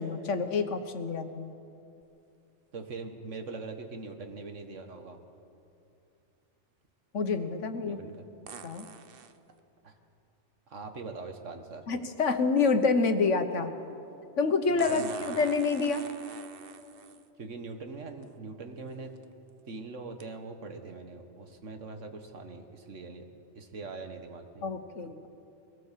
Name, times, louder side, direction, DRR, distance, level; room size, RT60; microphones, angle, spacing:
voice 1, 0.0-1.5 7.1-8.0 8.6-8.9 11.9-13.7 14.4-16.0 24.6-25.3, left 4 dB, 80° left, 8 dB, 1.5 m, -27 dB
sound 1, 2.0-2.1 8.5-9.4 11.4-11.5 14.8-17.3 18.2-18.3 19.0-19.2 20.2-20.3, right 7 dB, 55° right, 0.9 m, -45 dB
voice 2, 2.7-5.2 7.8-8.3 9.8-9.9 10.7-11.9 14.7-15.2 17.4-19.1 19.7-23.3 23.6-24.6, right 3 dB, 85° right, 6 dB, 1.8 m, -42 dB
22.0 x 17.5 x 7.5 m, 2.7 s
omnidirectional pair, 1.2 m